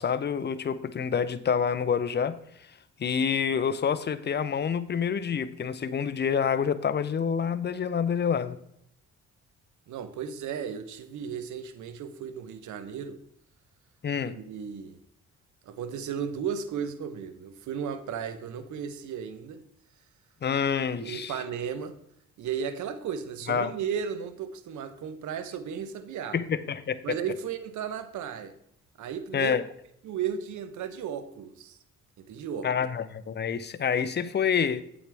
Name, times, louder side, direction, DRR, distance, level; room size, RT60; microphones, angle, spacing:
voice 1, 0.0-2.4 3.0-8.6 14.0-14.4 20.4-21.3 23.5-23.7 26.3-27.2 29.3-29.6 32.6-34.8, left 7 dB, 35° left, 12 dB, 0.7 m, -27 dB
voice 2, 9.9-13.2 14.3-15.0 15.7-19.6 21.0-21.9 22.4-26.4 27.0-28.5 29.0-29.6 30.0-31.8 32.2-32.7, right 7 dB, 75° right, 11 dB, 0.9 m, -35 dB
8.8 x 8.3 x 3.4 m, 0.71 s
cardioid pair, 90°, 30 cm